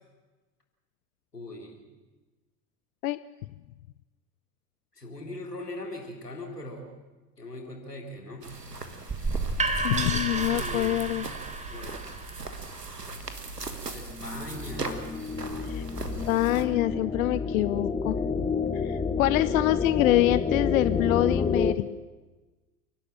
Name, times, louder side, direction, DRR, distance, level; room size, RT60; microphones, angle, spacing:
voice 1, 1.3-1.8 4.9-6.9 7.4-8.5 10.0-11.2 11.7-12.2 13.9-15.1, left 1 dB, 85° left, 1 dB, 3.7 m, -40 dB
sound 1, 8.4-16.7, right 3 dB, 90° right, 1.7 m, -40 dB
sound 2, 9.1-14.9, right 3 dB, 15° right, 2.5 m, -32 dB
voice 2, 9.8-11.3 15.6-15.8 16.3-18.2 18.7-21.9, left 16 dB, 60° left, 15 dB, 0.6 m, -25 dB
sound 3, 14.1-21.8, left 5 dB, 15° left, 1.0 m, -29 dB
28.0 x 12.0 x 8.8 m, 1.2 s
figure-of-eight pair, 80°, 46 cm